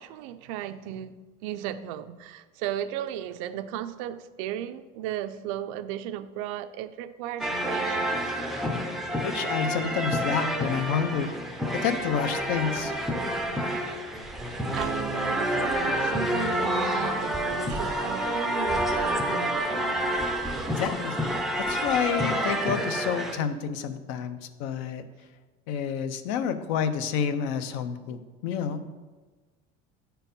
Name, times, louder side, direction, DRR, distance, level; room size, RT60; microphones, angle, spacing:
voice 1, 0.0-8.1 14.7-20.1 24.2-24.3, right 11 dB, 70° right, 0.5 m, -35 dB
sound 1, 7.4-23.4, right 1 dB, ahead, 0.5 m, -28 dB
voice 2, 9.2-11.3 11.7-12.9 20.8-21.2 21.7-25.0 25.7-28.8, left 7 dB, 70° left, 0.7 m, -29 dB
9.0 x 4.5 x 5.3 m
cardioid pair, 180°, 17 cm